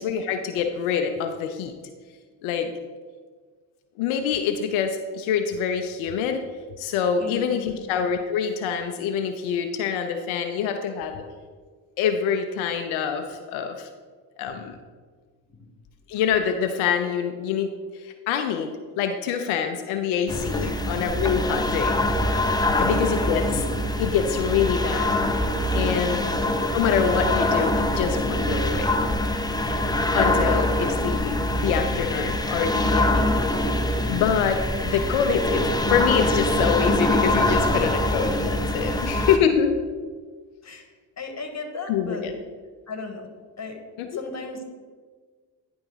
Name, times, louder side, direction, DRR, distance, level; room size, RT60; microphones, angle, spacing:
voice 1, 0.0-1.7 2.4-2.7 4.0-6.4 6.8-11.2 12.0-13.9 14.4-14.7 16.1-17.7 18.0-22.0 22.8-23.6 24.0-25.3 25.7-26.2 26.7-29.0 30.1-33.3 34.1-39.7 41.9-42.3 44.0-44.2, left 7 dB, 90° left, 6 dB, 0.6 m, -25 dB
voice 2, 7.2-7.8 14.5-14.7 15.5-15.7 20.6-21.1 22.7-23.3 26.0-26.4 38.9-39.3 40.6-42.3 42.9-43.3 43.6-43.8 44.1-44.6, left 3 dB, 35° left, 5 dB, 1.5 m, -37 dB
sound 1, 20.3-39.4, left 1 dB, 10° left, 0.8 m, -24 dB
9.8 x 3.5 x 5.5 m, 1.5 s
supercardioid pair, 45°, 47 cm